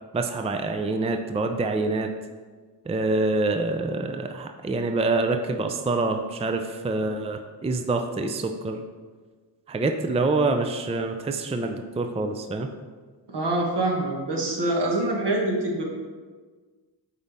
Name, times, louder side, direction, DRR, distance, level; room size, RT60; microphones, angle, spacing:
voice 1, 0.1-2.1 2.9-8.8 9.7-12.7, right 3 dB, 15° right, 5 dB, 0.4 m, -26 dB
voice 2, 13.3-15.8, right 2 dB, 65° right, -1 dB, 1.5 m, -25 dB
8.1 x 3.9 x 3.5 m, 1.4 s
cardioid pair, 60°, 44 cm